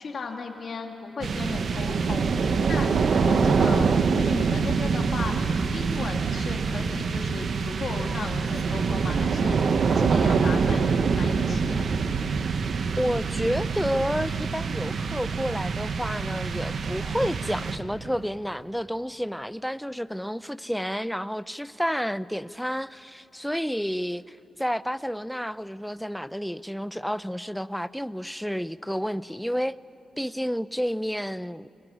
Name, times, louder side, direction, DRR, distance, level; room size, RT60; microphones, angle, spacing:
voice 1, 0.0-11.8, left 4 dB, 55° left, 2.3 m, -36 dB
sound 1, 1.2-18.2, right 5 dB, 65° right, 1.2 m, -25 dB
voice 2, 13.0-29.8 30.2-31.7, equal, ahead, 0.5 m, -30 dB
22.0 x 19.5 x 10.0 m
cardioid pair, 80°, 0 cm